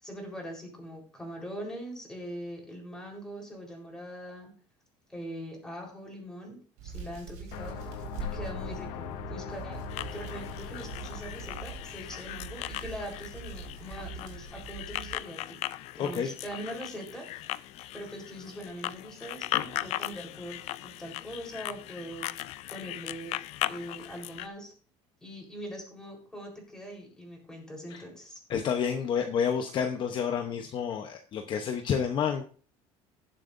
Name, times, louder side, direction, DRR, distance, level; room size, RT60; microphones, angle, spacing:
voice 1, 0.0-4.5 5.1-9.8 10.1-15.6 16.0-17.5 17.9-23.4 23.7-24.7 25.2-28.4, equal, 5° left, 0 dB, 4.0 m, -42 dB
Hands, 6.8-15.2, right 3 dB, 75° right, 4.4 m, -42 dB
sound 1, 7.5-14.2, left 10 dB, 75° left, 1.0 m, -43 dB
sound 2, 9.9-24.5, left 16 dB, 55° left, 0.5 m, -38 dB
voice 2, 16.0-16.3 27.9-28.0 28.5-32.4, left 7 dB, 40° left, 5 dB, 0.9 m, -29 dB
18.5 x 7.5 x 2.6 m, 0.41 s
cardioid pair, 150°, 13 cm